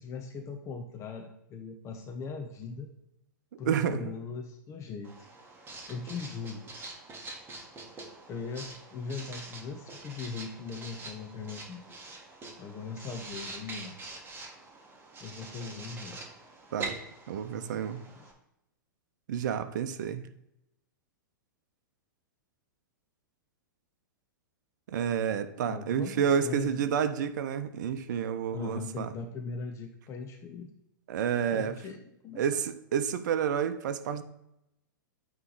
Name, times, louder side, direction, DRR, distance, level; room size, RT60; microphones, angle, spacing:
voice 1, 0.0-2.9 3.6-5.3 5.9-6.6 8.3-11.8 12.6-14.0 15.2-16.2 17.5-17.9 18.2-18.3 25.7-26.7 28.5-30.7 31.5-32.6, left 5 dB, 25° left, 0.7 m, -40 dB
voice 2, 3.7-4.0 16.7-17.0 17.3-18.0 19.3-20.2 24.9-29.1 31.1-31.8 32.4-34.2, right 8 dB, 60° right, 0.6 m, -29 dB
Writing, 5.0-18.3, right 3 dB, 20° right, 1.5 m, -45 dB
9.0 x 3.2 x 4.0 m
hypercardioid pair, 110°, 11 cm